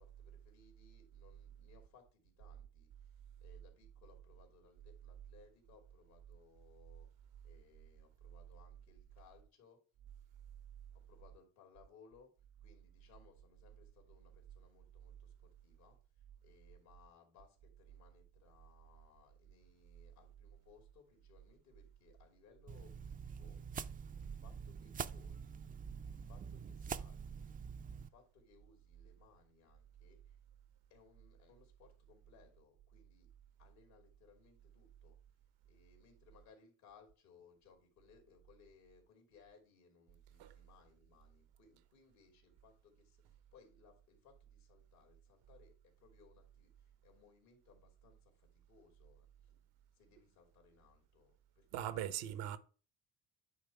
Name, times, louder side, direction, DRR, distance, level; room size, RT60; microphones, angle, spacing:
voice 1, 0.0-3.1 3.4-7.1 7.4-9.8 10.9-12.3 12.6-23.6 24.2-25.6 26.1-27.6 27.9-30.4 30.9-33.3 33.6-35.2 35.6-49.5 49.9-52.1, left 5 dB, 80° left, 2.7 m, -66 dB
sound 1, 22.7-28.1, right 6 dB, 25° right, 0.4 m, -45 dB
voice 2, 51.7-52.6, right 11 dB, 75° right, 0.9 m, -40 dB
9.4 x 3.1 x 5.7 m
hypercardioid pair, 65°, 38 cm